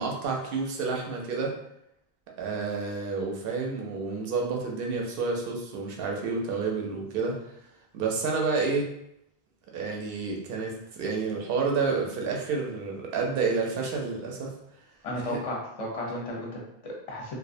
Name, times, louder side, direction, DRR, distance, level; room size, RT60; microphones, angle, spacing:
voice 1, 0.0-1.5 2.4-7.4 7.9-8.9 9.7-14.5 15.2-15.4, right 4 dB, 70° right, 0 dB, 0.7 m, -29 dB
voice 2, 15.0-17.4, left 1 dB, 40° left, -2 dB, 0.6 m, -34 dB
2.4 x 2.0 x 2.5 m, 0.79 s
omnidirectional pair, 1.0 m